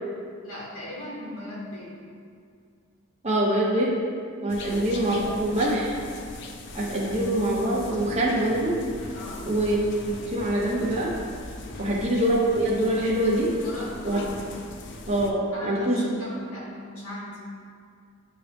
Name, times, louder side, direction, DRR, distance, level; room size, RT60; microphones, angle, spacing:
voice 1, 0.4-1.9 4.6-4.9 9.1-9.5 11.7-12.1 13.6-14.3 15.5-17.4, left 1 dB, 85° left, -6 dB, 1.5 m, -38 dB
voice 2, 3.2-4.0 4.4-5.9 6.7-8.7 9.4-11.1 11.8-13.5 14.0-14.2 15.1-16.1, right 1 dB, 30° right, -6 dB, 0.9 m, -24 dB
sound 1, 4.5-15.3, left 2 dB, 55° left, 0.5 m, -40 dB
9.2 x 3.4 x 3.0 m, 2.2 s
head